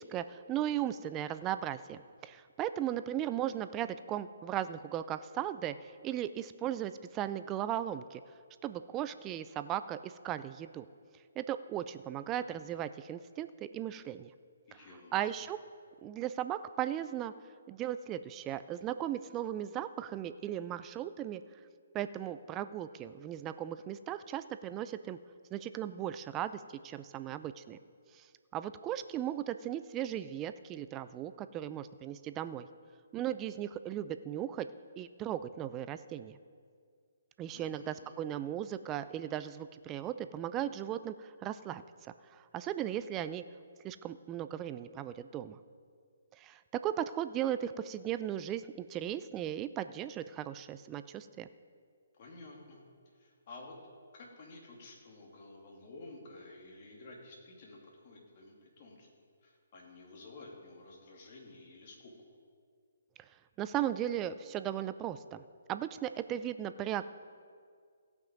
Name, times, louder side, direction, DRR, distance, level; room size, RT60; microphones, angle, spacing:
voice 1, 0.0-8.2 8.6-10.9 11.4-14.3 15.1-15.6 16.0-17.3 17.7-21.4 21.9-25.2 25.5-27.8 28.1-28.3 28.5-32.7 33.1-34.7 35.0-36.4 37.4-41.8 42.3-43.4 43.8-45.6 46.3-51.5 63.6-65.4 65.7-67.0, right 11 dB, 20° right, 12 dB, 0.4 m, -37 dB
voice 2, 14.7-15.5 37.5-38.1 52.1-52.8 53.1-53.8 54.1-59.1 59.4-62.3, left 2 dB, 40° left, -1 dB, 2.6 m, -52 dB
16.5 x 5.9 x 5.2 m, 2.1 s
hypercardioid pair, 150°, 0 cm